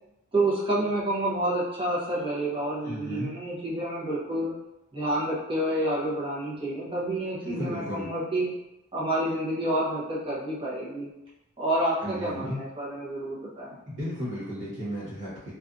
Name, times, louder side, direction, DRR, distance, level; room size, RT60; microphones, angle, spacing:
voice 1, 0.3-4.5 4.9-8.5 8.9-11.1 11.6-13.8, right 1 dB, 25° right, -7 dB, 0.7 m, -29 dB
voice 2, 2.8-3.3 7.4-8.1 12.0-12.6 13.9-15.5, equal, 55° right, -12 dB, 1.1 m, -34 dB
2.5 x 2.3 x 2.4 m, 0.93 s
head